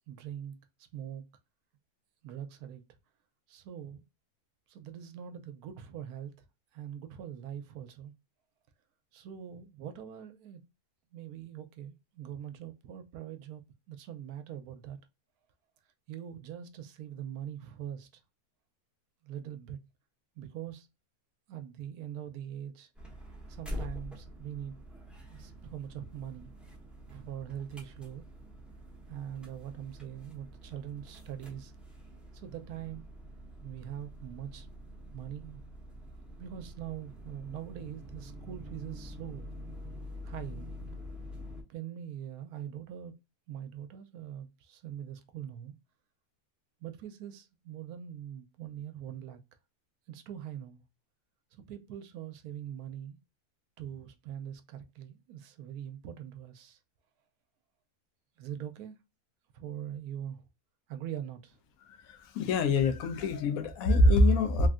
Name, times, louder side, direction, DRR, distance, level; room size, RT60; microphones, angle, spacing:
voice 1, 0.1-0.6 0.9-1.2 2.2-2.8 3.5-4.0 4.7-6.3 6.7-8.1 9.1-10.6 11.1-13.6 13.9-15.0 16.1-18.1 19.2-19.8 20.4-20.9 21.5-22.9 23.5-24.8 25.3-26.5 27.1-28.3 29.1-31.7 32.3-33.0 33.6-34.7 35.1-35.6 36.4-39.5 40.2-40.7 41.7-43.1 43.5-45.8 46.8-49.4 50.1-50.8 51.7-53.2 53.8-56.8 58.4-59.0 59.5-60.4 60.9-61.6, right 10 dB, 75° right, 1.0 m, -42 dB
sound 1, 23.0-41.6, equal, ahead, 0.4 m, -46 dB
voice 2, 62.0-64.7, left 2 dB, 70° left, 1.0 m, -24 dB
3.3 x 2.5 x 2.4 m
omnidirectional pair, 1.7 m